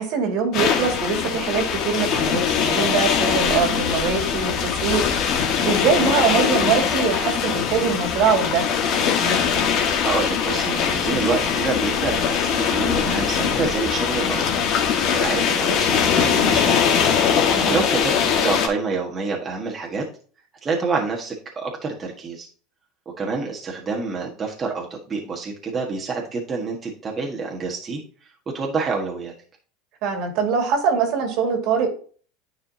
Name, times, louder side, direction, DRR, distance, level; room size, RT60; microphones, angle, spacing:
voice 1, 0.0-5.0 5.6-8.7 17.5-17.8 30.0-31.9, right 6 dB, 60° right, 4 dB, 2.2 m, -23 dB
sound 1, 0.5-18.7, left 7 dB, 50° left, 1.7 m, -21 dB
voice 2, 10.0-14.4 15.1-17.0 17.7-18.1 18.4-20.0 20.6-22.5 23.2-29.3, right 4 dB, 25° right, -1 dB, 1.6 m, -27 dB
9.8 x 5.0 x 2.8 m, 0.41 s
supercardioid pair, 120°, 0 cm